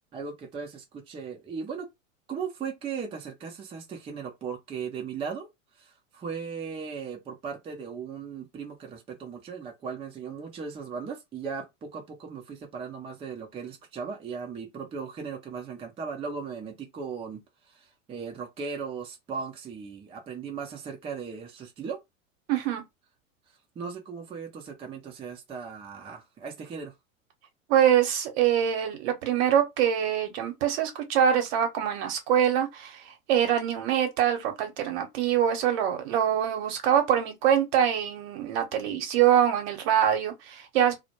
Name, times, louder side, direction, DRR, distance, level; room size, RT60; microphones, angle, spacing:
voice 1, 0.1-1.9 2.3-5.5 5.8-22.0 23.8-26.9, right 6 dB, 15° right, 0.4 m, -37 dB
voice 2, 22.5-22.8 27.7-41.0, right 9 dB, 50° right, 0.8 m, -24 dB
2.1 x 2.0 x 2.9 m
hypercardioid pair, 90°, 40 cm